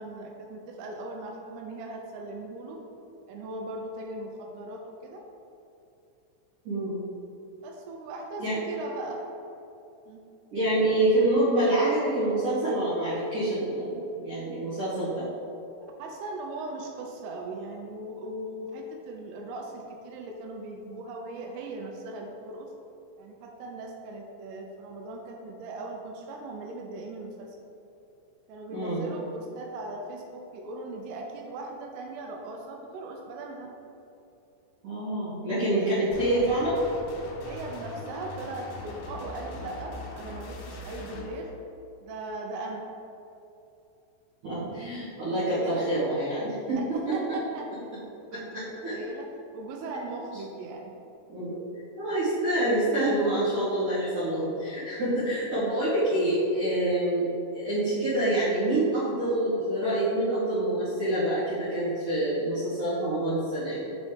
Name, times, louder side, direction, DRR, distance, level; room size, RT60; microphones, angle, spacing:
voice 1, 0.0-2.8 3.3-5.2 7.6-9.2 10.1-10.2 16.0-22.7 23.2-27.6 28.5-33.7 35.7-36.0 37.4-41.5 42.0-42.8 45.2-45.9 46.8-47.7 48.1-49.3 49.5-50.9, right 2 dB, 85° right, 1 dB, 3.1 m, -39 dB
voice 2, 6.6-7.0 8.4-8.6 10.5-15.3 28.7-29.1 34.8-36.8 44.4-46.8 47.1-47.2 48.8-48.9 51.3-51.6 52.0-63.7, right 1 dB, 65° right, -14 dB, 2.1 m, -26 dB
sound 1, 36.1-41.3, left 2 dB, 80° left, 3.4 m, -41 dB
7.2 x 4.1 x 3.3 m, 2.8 s
omnidirectional pair, 5.9 m